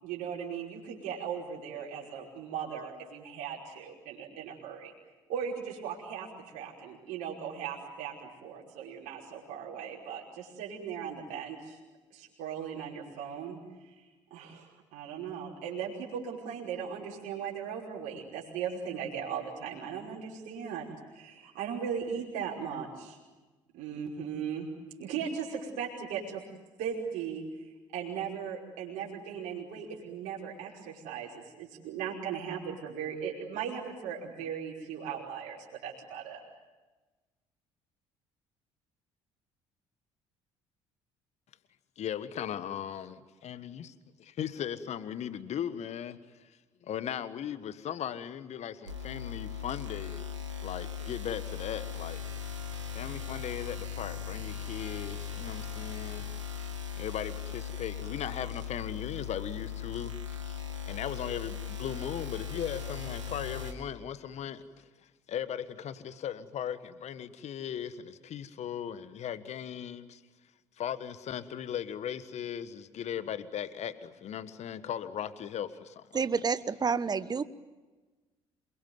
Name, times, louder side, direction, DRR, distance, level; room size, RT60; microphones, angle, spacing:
voice 1, 0.0-4.9 5.3-11.8 12.1-14.0 14.3-23.2 23.7-24.7 25.0-26.4 26.8-27.4 27.9-36.4, right 7 dB, 60° right, 5.4 m, -38 dB
voice 2, 42.0-43.9 44.2-46.5 46.8-50.2 50.6-52.2 52.9-56.3 57.0-64.8 65.3-70.2 70.8-76.2, left 9 dB, 45° left, 1.5 m, -38 dB
sound 1, 48.9-63.7, left 8 dB, 85° right, 2.8 m, -38 dB
voice 3, 76.1-77.4, right 5 dB, 25° right, 1.2 m, -29 dB
28.0 x 22.5 x 9.5 m
figure-of-eight pair, 55°, 15 cm